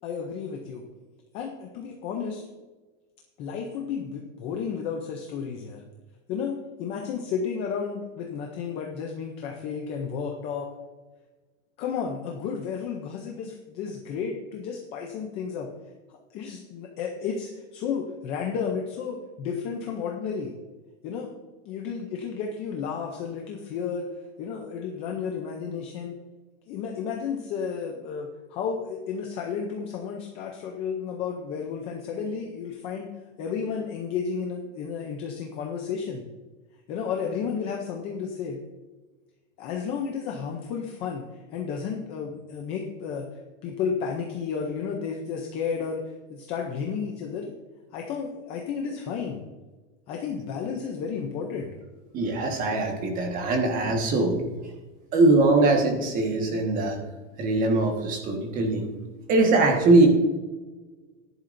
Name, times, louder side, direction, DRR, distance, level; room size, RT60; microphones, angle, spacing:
voice 1, 0.0-0.8 1.3-2.5 3.4-5.8 6.3-10.7 11.8-15.7 16.3-20.5 21.0-21.3 21.7-24.1 24.4-26.1 26.7-33.1 33.4-36.2 36.9-38.6 39.6-46.0 46.3-47.5 47.9-49.4 50.1-51.7, left 6 dB, 15° left, 1 dB, 0.5 m, -32 dB
voice 2, 52.1-54.4 55.1-57.0 57.4-59.0 59.3-60.1, right 2 dB, 20° right, 4 dB, 1.4 m, -21 dB
14.0 x 10.5 x 2.6 m, 1.3 s
supercardioid pair, 175°, 37 cm